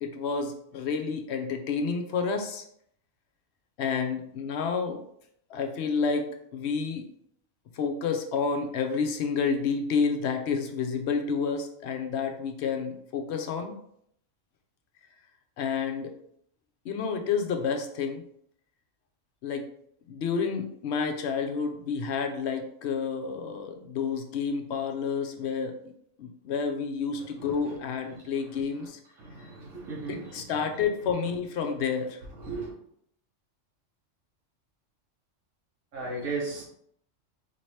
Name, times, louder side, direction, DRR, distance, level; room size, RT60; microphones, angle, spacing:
voice 1, 0.0-2.6 3.8-5.0 5.5-7.0 7.8-13.8 15.6-16.1 16.8-18.2 19.4-19.6 20.1-25.7 26.2-29.0 30.1-32.2, left 5 dB, 65° left, 5 dB, 0.8 m, -29 dB
voice 2, 29.2-30.4 32.4-32.7 35.9-36.6, right 3 dB, 80° right, -5 dB, 1.3 m, -35 dB
4.3 x 2.9 x 3.2 m, 0.69 s
omnidirectional pair, 1.3 m